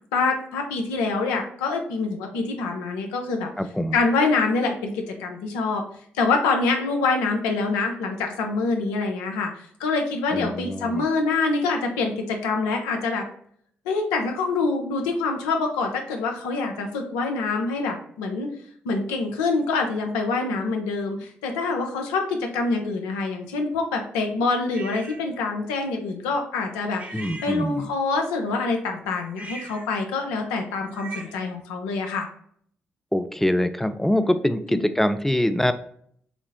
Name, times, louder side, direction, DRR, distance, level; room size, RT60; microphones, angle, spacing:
voice 1, 0.1-3.5 3.9-5.8 6.2-13.2 13.9-18.5 18.8-32.3 34.7-35.0, left 3 dB, 85° left, 3 dB, 0.6 m, -25 dB
voice 2, 3.6-4.0 10.3-11.0 27.1-27.8 33.1-35.7, left 1 dB, 5° left, 10 dB, 0.5 m, -24 dB
sound 1, 24.7-25.2 27.0-28.0 29.3-31.5, right 2 dB, 30° right, 1.0 m, -41 dB
5.9 x 2.0 x 2.7 m, 0.63 s
hypercardioid pair, 45°, 5 cm